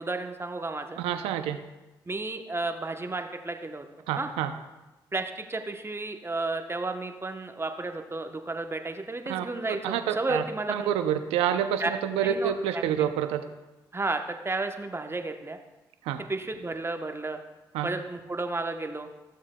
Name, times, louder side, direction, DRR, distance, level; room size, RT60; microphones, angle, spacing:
voice 1, 0.0-1.0 2.1-3.9 4.1-4.3 5.1-10.9 11.8-11.9 12.2-13.1 13.9-15.6 16.3-17.4 17.8-19.1, right 2 dB, 25° right, 6 dB, 0.9 m, -32 dB
voice 2, 1.0-1.6 4.1-4.5 9.3-9.4 9.8-10.4 10.7-13.5 16.1-16.2 17.7-17.9, right 9 dB, 90° right, 9 dB, 0.5 m, -28 dB
14.0 x 7.1 x 2.2 m, 1.1 s
supercardioid pair, 45°, 10 cm